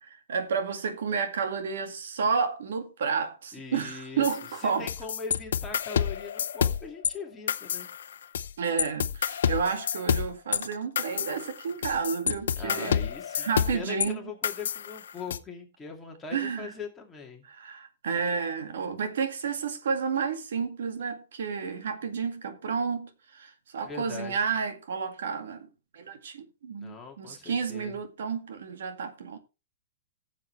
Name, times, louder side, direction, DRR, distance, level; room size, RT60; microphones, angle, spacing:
voice 1, 0.0-4.9 8.6-14.2 16.3-16.7 17.4-25.7 25.9-29.4, right 6 dB, 75° right, 2.0 m, -31 dB
voice 2, 3.5-4.3 4.6-7.9 12.6-17.4 23.8-24.4 26.8-28.0, left 5 dB, 10° left, 2.3 m, -41 dB
sound 1, 4.2-7.1 7.5-8.5 8.8-14.1 14.4-15.4, left 8 dB, 80° left, 0.8 m, -29 dB
15.0 x 7.4 x 3.2 m
hypercardioid pair, 155°, 0 cm